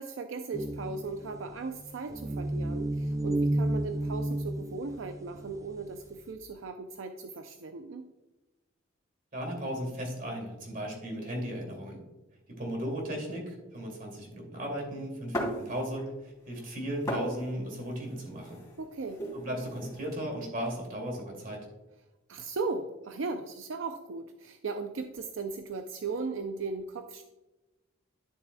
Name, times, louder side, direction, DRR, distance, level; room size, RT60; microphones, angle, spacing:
voice 1, 0.0-8.0 18.8-19.2 22.3-27.2, right 3 dB, 80° right, 6 dB, 0.5 m, -37 dB
sound 1, 0.5-5.8, right 1 dB, 15° right, 0.4 m, -31 dB
voice 2, 9.3-12.0 12.5-18.6 19.3-21.6, equal, 45° right, 1 dB, 2.5 m, -36 dB
sound 2, 15.3-16.2 16.5-20.2, equal, 20° left, 2.7 m, -38 dB
11.5 x 6.8 x 2.2 m, 1.0 s
head